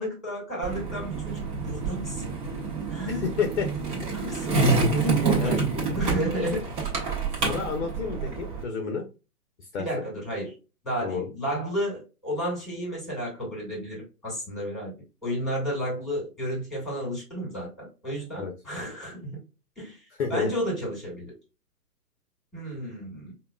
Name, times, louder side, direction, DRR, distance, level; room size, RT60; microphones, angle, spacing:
voice 1, 0.0-2.2 2.9-3.2 4.1-6.7 9.8-10.5 10.8-14.9 15.2-19.4 19.8-20.0 20.3-21.3 22.5-23.3, equal, ahead, -4 dB, 2.0 m, -32 dB
Skateboard, 0.6-8.6, right 3 dB, 30° right, 1.4 m, -28 dB
voice 2, 3.1-3.7 5.4-5.6 7.4-9.0 9.7-9.8 11.0-11.3 18.3-18.5 20.2-20.5, left 5 dB, 45° left, 3 dB, 0.9 m, -30 dB
5.2 x 2.4 x 2.3 m, 0.30 s
figure-of-eight pair, 135°, 48 cm